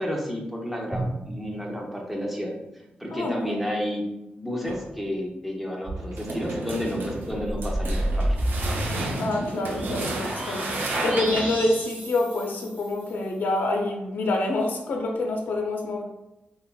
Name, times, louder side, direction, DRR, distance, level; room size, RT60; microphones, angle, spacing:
voice 1, 0.0-2.5 3.0-4.0 4.3-8.4, equal, 5° right, -1 dB, 0.6 m, -31 dB
Drum, 0.9-3.9, right 2 dB, 30° right, 1.1 m, -38 dB
voice 2, 3.1-3.6 9.2-16.0, left 2 dB, 65° left, 2 dB, 0.4 m, -27 dB
sound 1, 4.6-5.0 5.8-11.8, right 2 dB, 80° right, 0.5 m, -32 dB
sound 2, 7.3-13.1, equal, 55° right, 1.2 m, -30 dB
3.5 x 2.0 x 2.2 m, 0.91 s
wide cardioid pair, 115°, 3 cm